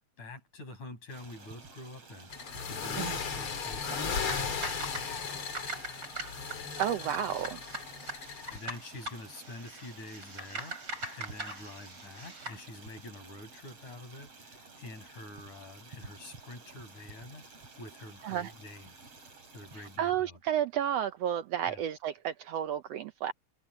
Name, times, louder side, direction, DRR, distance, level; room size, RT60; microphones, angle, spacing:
voice 1, 0.0-4.7 8.5-19.0 19.5-20.4 21.7-21.8, left 2 dB, 75° left, 8.3 m, -47 dB
Stream, 1.1-20.0, right 4 dB, 50° right, 5.7 m, -52 dB
sound 1, 2.3-8.6, left 6 dB, 45° left, 2.8 m, -36 dB
sound 2, 3.9-12.6, right 2 dB, 35° right, 7.1 m, -42 dB
voice 2, 6.8-7.6 18.2-18.5 20.0-23.3, right 10 dB, 75° right, 1.6 m, -31 dB
omnidirectional pair, 3.4 m